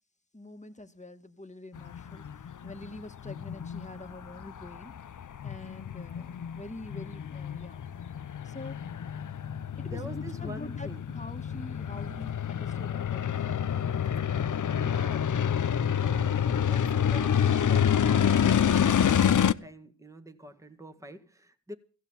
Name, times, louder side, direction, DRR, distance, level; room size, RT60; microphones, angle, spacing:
voice 1, 0.3-2.2 2.6-4.9 5.4-7.8 8.4-8.8 9.8-13.7, left 2 dB, 15° left, 1.9 m, -45 dB
sound 1, 1.7-19.5, left 8 dB, 40° left, 0.8 m, -28 dB
voice 2, 9.8-11.0 14.7-15.4 16.0-21.7, right 1 dB, 5° right, 1.9 m, -46 dB
15.5 x 9.2 x 7.4 m
cardioid pair, 60°, 46 cm